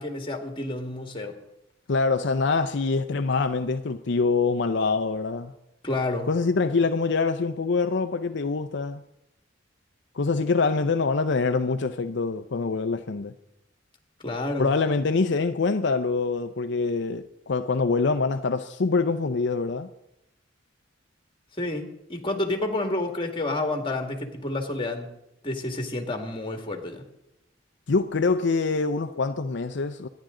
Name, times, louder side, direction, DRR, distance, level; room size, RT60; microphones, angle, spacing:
voice 1, 0.0-1.4 5.8-6.3 14.2-14.7 21.6-25.1 25.4-27.0, left 2 dB, 25° left, 2.0 m, -29 dB
voice 2, 1.9-5.5 6.3-9.0 10.1-13.3 14.6-19.9 27.9-30.1, left 4 dB, 65° left, 0.6 m, -25 dB
25.0 x 10.5 x 3.8 m
head